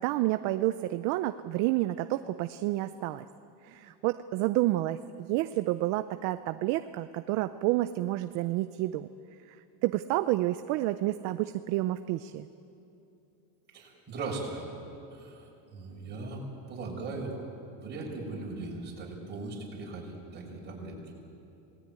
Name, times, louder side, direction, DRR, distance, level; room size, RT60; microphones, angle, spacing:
voice 1, 0.0-3.3 3.6-9.1 9.8-12.5, right 16 dB, 40° right, 11 dB, 0.5 m, -29 dB
voice 2, 13.7-14.6 15.1-17.5 17.8-21.0, right 3 dB, 25° right, -2 dB, 6.5 m, -39 dB
27.0 x 19.5 x 9.4 m, 3.0 s
cardioid pair, 165°, 44 cm